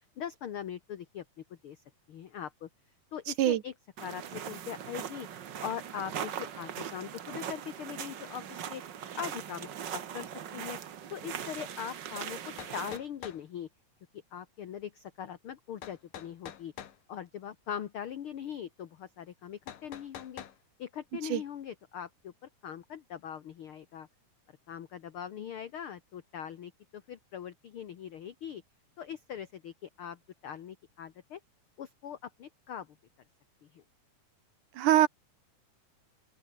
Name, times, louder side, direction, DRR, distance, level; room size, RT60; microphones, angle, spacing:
voice 1, 0.2-1.2 1.6-1.8 2.1-2.7 3.1-3.7 4.0-5.3 5.6-8.8 9.2-10.8 11.1-12.4 12.7-13.7 14.3-16.7 17.1-20.4 20.8-22.3 22.6-24.1 24.7-28.6 29.0-31.4 31.8-32.9 33.7-33.8, left 9 dB, 55° left, 1.6 m, -41 dB
sound 1, 4.0-13.0, right 9 dB, 55° right, 1.3 m, -40 dB
sound 2, 12.1-12.2 12.6-13.4 15.8-17.0 19.7-20.6, left 10 dB, 85° left, 3.5 m, -45 dB
voice 2, 34.8-35.1, right 12 dB, 75° right, 2.7 m, -23 dB
open air
omnidirectional pair, 3.7 m